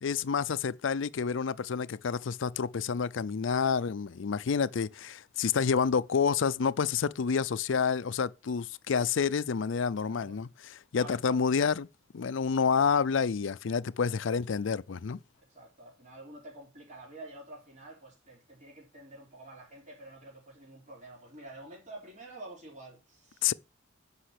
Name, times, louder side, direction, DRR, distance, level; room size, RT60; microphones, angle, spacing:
voice 1, 0.0-10.5 10.9-11.9 12.1-15.2 23.4-23.5, left 6 dB, 70° left, 0.5 m, -28 dB
voice 2, 3.4-3.8 10.1-10.4 10.9-11.4 14.0-14.3 15.4-23.5, right 2 dB, 40° right, 4.2 m, -49 dB
10.0 x 5.6 x 6.7 m
head